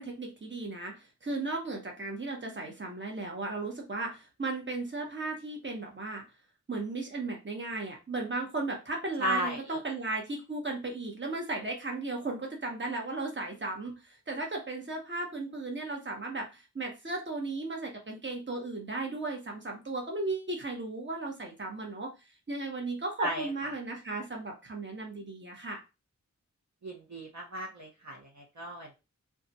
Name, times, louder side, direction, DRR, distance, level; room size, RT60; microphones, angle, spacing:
voice 1, 0.0-6.2 6.7-22.1 22.5-25.8, right 2 dB, 40° right, 1 dB, 1.0 m, -35 dB
voice 2, 9.2-9.8 23.2-23.5 26.8-28.9, right 1 dB, 70° right, -2 dB, 0.9 m, -35 dB
2.4 x 2.4 x 4.0 m, 0.27 s
wide cardioid pair, 55°, 30 cm